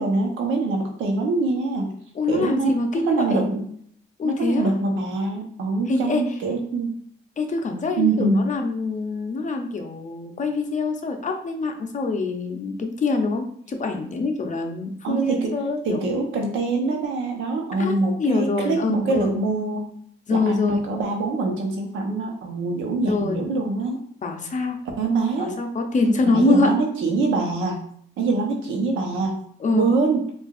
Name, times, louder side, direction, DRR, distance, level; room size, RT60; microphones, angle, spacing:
voice 1, 0.0-1.9 2.3-2.7 3.1-3.6 4.2-6.9 8.0-8.5 15.0-15.5 15.8-19.9 20.3-24.0 25.0-25.5 26.2-27.8 28.2-29.4 29.7-30.3, right 3 dB, 85° right, 2 dB, 0.9 m, -24 dB
voice 2, 2.2-3.4 4.2-4.7 5.9-6.2 7.4-16.0 17.8-19.3 20.3-20.8 23.0-23.4 24.2-24.8 25.4-26.7 29.6-29.9, left 3 dB, 40° left, 4 dB, 0.7 m, -24 dB
4.6 x 2.5 x 2.4 m, 0.64 s
cardioid pair, 90°, 20 cm